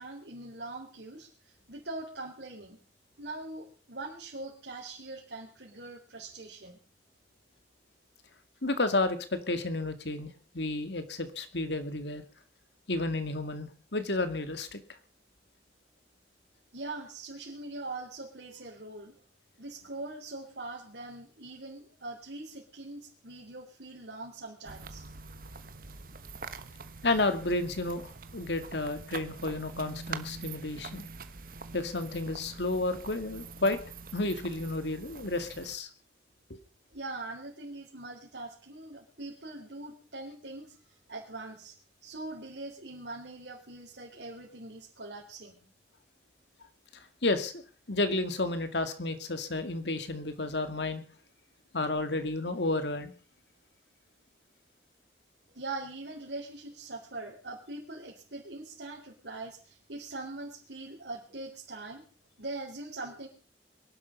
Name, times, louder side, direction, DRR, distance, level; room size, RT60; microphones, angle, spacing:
voice 1, 0.0-2.8 3.2-6.8 16.7-19.2 19.6-25.0 36.9-41.7 42.0-45.6 55.5-62.0 62.4-63.3, right 2 dB, 70° right, -4 dB, 4.1 m, -42 dB
voice 2, 8.6-12.2 12.9-14.8 27.0-28.1 28.3-31.1 31.7-33.8 34.1-35.9 36.5-36.6 47.2-47.6 47.9-51.0 51.7-53.1, left 2 dB, 70° left, 9 dB, 2.2 m, -31 dB
sound 1, 24.6-35.8, right 4 dB, 50° right, 1.3 m, -44 dB
22.5 x 11.5 x 5.4 m, 0.41 s
head